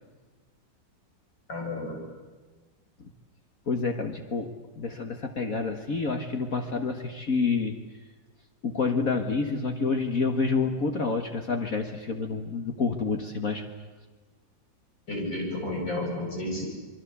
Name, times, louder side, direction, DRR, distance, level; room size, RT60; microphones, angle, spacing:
voice 1, 1.5-2.0 15.1-16.7, left 1 dB, 85° left, 0 dB, 8.9 m, -32 dB
voice 2, 3.7-4.5 4.8-7.8 8.6-13.6, left 4 dB, 50° left, 5 dB, 2.0 m, -28 dB
28.0 x 23.0 x 8.5 m, 1.3 s
omnidirectional pair, 2.0 m